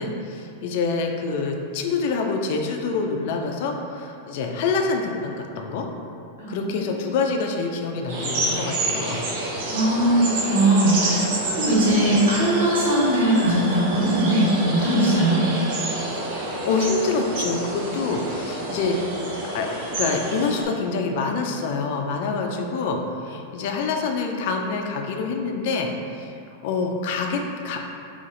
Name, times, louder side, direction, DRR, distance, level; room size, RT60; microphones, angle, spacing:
voice 1, 0.0-5.9 6.5-9.2 11.6-11.7 14.9-15.3 16.2-19.0 19.4-19.7 20.0-26.3 26.6-27.8, left 4 dB, 60° left, 3 dB, 0.5 m, -26 dB
voice 2, 6.4-6.8 9.7-15.4, right 1 dB, 85° right, -8 dB, 1.5 m, -20 dB
sound 1, 8.1-20.6, right 2 dB, 65° right, 1.1 m, -28 dB
4.1 x 2.9 x 3.8 m, 2.6 s
hypercardioid pair, 115°, 0 cm